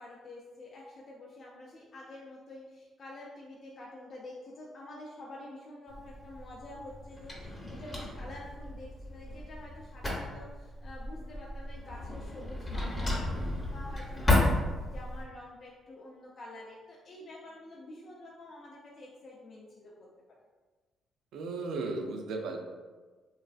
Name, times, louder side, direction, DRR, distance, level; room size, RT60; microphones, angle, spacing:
voice 1, 0.0-13.4 13.7-20.4, left 1 dB, 50° left, -3 dB, 0.4 m, -48 dB
Drawer open or close, 5.9-15.2, left 2 dB, 15° left, 0.7 m, -33 dB
voice 2, 21.3-22.6, right 3 dB, 80° right, 3 dB, 0.4 m, -35 dB
3.1 x 2.4 x 2.4 m, 1.3 s
cardioid pair, 90°, 0 cm